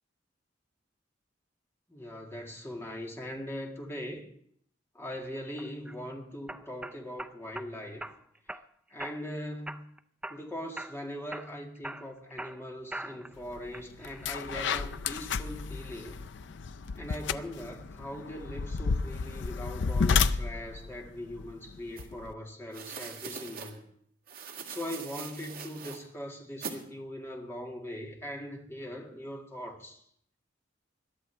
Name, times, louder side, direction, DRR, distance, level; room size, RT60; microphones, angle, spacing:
voice 1, 1.9-4.3 5.0-8.1 8.9-9.9 10.3-16.2 16.9-23.9 24.7-30.0, equal, 15° left, 1.9 m, -40 dB
sound 1, 5.6-6.0 6.5-7.7 8.0-8.6 9.0-9.4 9.7-10.5 10.8-11.0 11.3-13.3 13.7-14.3, right 1 dB, 5° right, 0.4 m, -41 dB
sound 2, 13.5-13.7 14.0-22.3, left 5 dB, 65° left, 0.5 m, -32 dB
sound 3, 22.0-22.1 22.7-23.7 24.3-26.0 26.6-26.8, right 6 dB, 50° right, 2.0 m, -42 dB
21.5 x 12.5 x 3.4 m
head